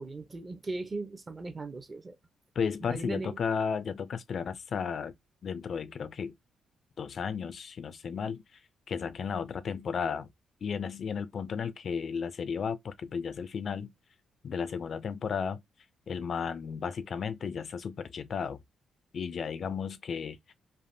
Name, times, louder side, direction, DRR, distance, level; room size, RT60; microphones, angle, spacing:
voice 1, 0.0-2.2 2.8-3.4, right 3 dB, 30° right, 0.6 m, -38 dB
voice 2, 2.6-5.1 5.4-6.3 7.0-8.4 8.9-10.3 10.6-13.9 14.4-15.6 16.1-18.6 19.1-20.5, left 6 dB, 55° left, 0.4 m, -34 dB
3.3 x 2.1 x 2.6 m
cardioid pair, 100°, 0 cm